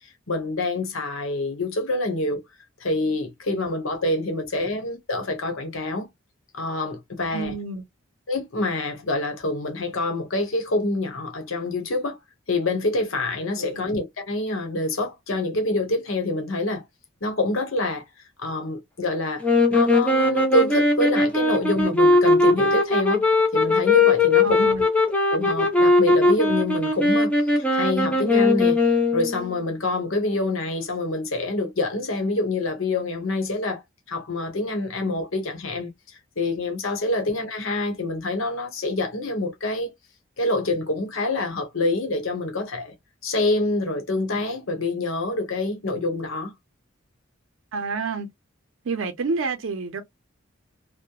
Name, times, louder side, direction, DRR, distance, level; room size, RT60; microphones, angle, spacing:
voice 1, 0.3-2.4 2.8-6.1 6.5-7.5 8.3-12.2 12.5-16.8 17.2-18.0 18.4-23.2 23.5-24.7 25.3-28.8 29.1-33.8 34.1-39.9 40.4-42.9 43.2-46.5, left 2 dB, 75° left, 0.9 m, -26 dB
voice 2, 7.3-7.8 13.5-13.8 24.4-24.9 47.7-48.3 48.8-50.0, right 4 dB, 70° right, 0.5 m, -29 dB
sound 1, 19.4-29.5, left 3 dB, 5° left, 0.5 m, -19 dB
2.8 x 2.1 x 2.2 m
head